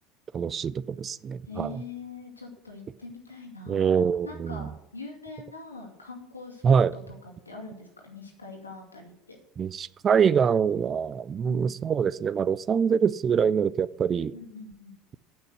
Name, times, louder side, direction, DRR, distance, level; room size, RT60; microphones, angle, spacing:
voice 1, 0.3-1.8 3.7-4.7 6.6-6.9 9.6-14.3, right 7 dB, 30° right, 19 dB, 0.3 m, -24 dB
voice 2, 1.5-3.9 4.2-6.6 6.9-9.4 11.4-11.7 14.3-14.9, left 2 dB, 85° left, -1 dB, 2.2 m, -43 dB
8.7 x 6.0 x 8.1 m, 0.79 s
figure-of-eight pair, 70°, 0 cm